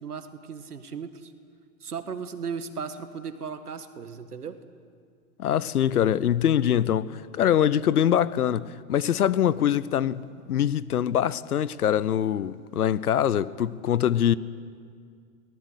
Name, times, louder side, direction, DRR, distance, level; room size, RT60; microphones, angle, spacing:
voice 1, 0.0-1.3 1.8-4.6, right 6 dB, 90° right, 1.8 m, -36 dB
voice 2, 5.4-10.2 10.5-14.4, left 10 dB, 80° left, 0.9 m, -23 dB
23.5 x 18.5 x 8.2 m
hypercardioid pair, 110°, 44 cm